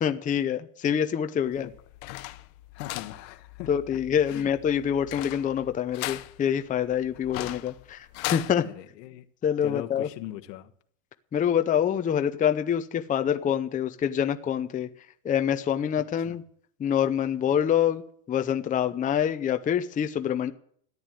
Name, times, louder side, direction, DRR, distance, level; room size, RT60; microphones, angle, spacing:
voice 1, 0.0-1.7 3.7-8.7 9.4-10.1 11.3-14.9 15.2-16.4 16.8-18.0 18.3-20.5, left 9 dB, 15° left, 0.6 m, -26 dB
sound 1, 1.5-8.5, left 19 dB, 60° left, 1.0 m, -38 dB
voice 2, 2.7-3.7 4.2-4.5 8.6-9.2 9.6-10.7 15.9-16.4, left 14 dB, 85° left, 1.4 m, -40 dB
13.5 x 9.5 x 7.6 m
supercardioid pair, 130°, 48 cm